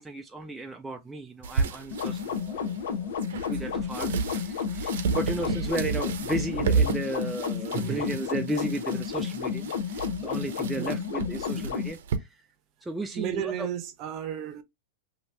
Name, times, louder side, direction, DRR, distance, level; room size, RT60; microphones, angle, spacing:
voice 1, 0.0-3.2 3.5-12.5 12.8-13.7, right 2 dB, 5° right, 0.3 m, -35 dB
sound 1, 1.4-12.2, right 5 dB, 75° right, 0.6 m, -32 dB
sound 2, 1.9-11.9, left 7 dB, 80° left, 0.8 m, -32 dB
voice 2, 7.7-8.1 10.8-11.3 11.6-11.7 13.1-14.6, right 10 dB, 35° right, 0.7 m, -34 dB
2.9 x 2.7 x 3.2 m
supercardioid pair, 150°, 0 cm